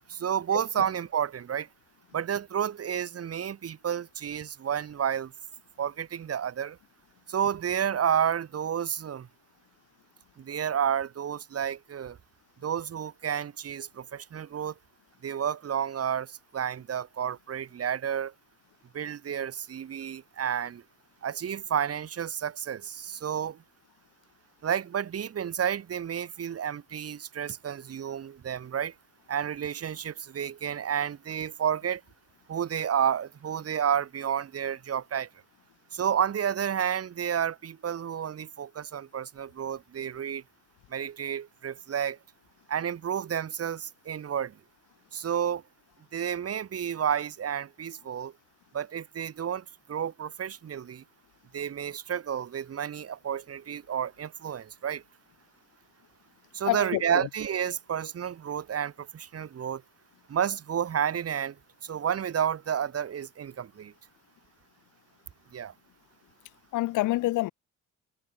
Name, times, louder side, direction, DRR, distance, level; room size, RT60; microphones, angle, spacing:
voice 1, 0.1-1.7 2.1-5.3 5.8-6.8 7.3-9.3 10.4-12.2 12.6-14.7 15.2-18.3 18.9-20.8 21.2-23.6 24.6-28.9 29.3-32.0 32.5-35.3 35.9-40.4 40.9-42.2 42.7-44.6 45.1-45.6 46.1-48.3 48.7-51.0 51.5-55.0 56.5-59.8 60.3-61.6 61.8-63.9 65.5-65.7, right 8 dB, 50° right, 2.2 m, -31 dB
voice 2, 56.7-57.0 66.7-67.5, left 17 dB, 80° left, 0.7 m, -26 dB
cardioid pair, 90°, 30 cm